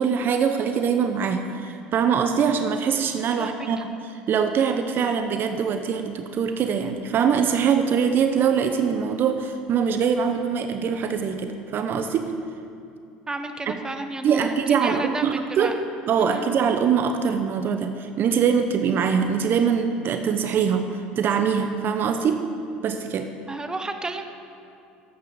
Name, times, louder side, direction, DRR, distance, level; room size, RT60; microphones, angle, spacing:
voice 1, 0.0-12.3 13.7-13.8 14.2-15.7 16.1-22.4 22.8-23.3, right 7 dB, 45° right, 7 dB, 0.8 m, -23 dB
voice 2, 13.3-14.5 14.8-15.8 16.2-16.5 23.5-24.3, right 2 dB, 15° right, 7 dB, 1.0 m, -32 dB
11.0 x 8.4 x 7.0 m, 2.6 s
hypercardioid pair, 80°, 5 cm